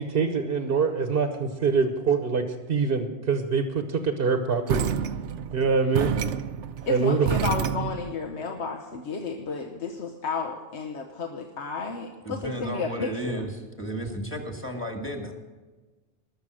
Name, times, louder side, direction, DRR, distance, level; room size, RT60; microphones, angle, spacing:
voice 1, 0.0-4.9 5.5-6.1 6.9-7.3, right 5 dB, 60° right, 6 dB, 1.1 m, -24 dB
sound 1, 4.7-8.2, right 8 dB, 90° right, 1.0 m, -28 dB
voice 2, 6.9-13.4, left 5 dB, 80° left, 3 dB, 1.3 m, -32 dB
voice 3, 12.2-15.3, right 1 dB, 10° left, 2 dB, 1.8 m, -33 dB
20.5 x 7.0 x 6.3 m, 1.3 s
omnidirectional pair, 1.2 m